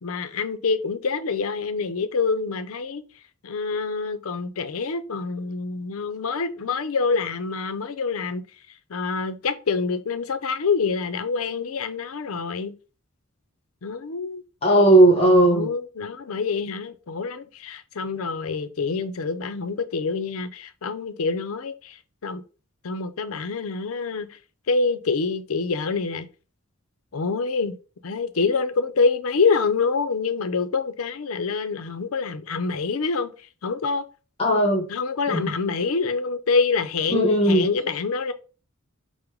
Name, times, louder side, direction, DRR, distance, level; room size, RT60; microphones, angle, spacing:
voice 1, 0.0-3.0 3.4-8.4 8.9-12.7 13.8-14.4 15.3-22.0 22.2-22.4 22.8-24.4 24.7-26.3 27.1-27.8 28.0-33.3 33.6-34.0 34.9-38.3, left 4 dB, 85° left, 0.5 m, -26 dB
voice 2, 14.6-15.7 34.4-34.8 35.3-35.5 37.1-37.6, right 1 dB, 30° left, 0.9 m, -17 dB
5.0 x 2.1 x 4.6 m
head